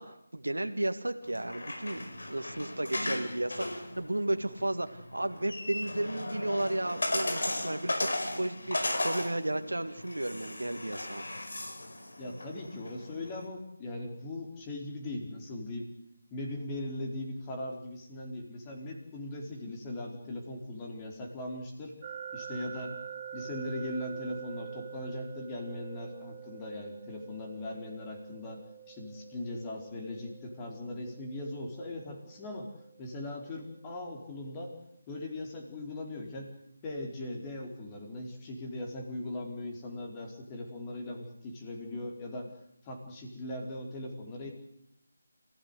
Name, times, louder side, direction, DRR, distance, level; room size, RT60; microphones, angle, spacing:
voice 1, 0.0-11.3, right 1 dB, 75° right, 8 dB, 2.0 m, -33 dB
sound 1, 1.2-13.5, left 1 dB, 65° left, 4.8 m, -36 dB
voice 2, 12.2-15.9 16.3-22.0 22.3-23.0 23.3-28.6 28.9-32.7 33.0-34.7 35.1-36.5 36.8-42.6 42.8-44.5, left 1 dB, 20° left, 1 dB, 4.4 m, -39 dB
sound 2, 22.0-34.9, right 9 dB, 30° right, 1.2 m, -47 dB
29.0 x 16.5 x 8.2 m, 0.79 s
figure-of-eight pair, 155°, 0 cm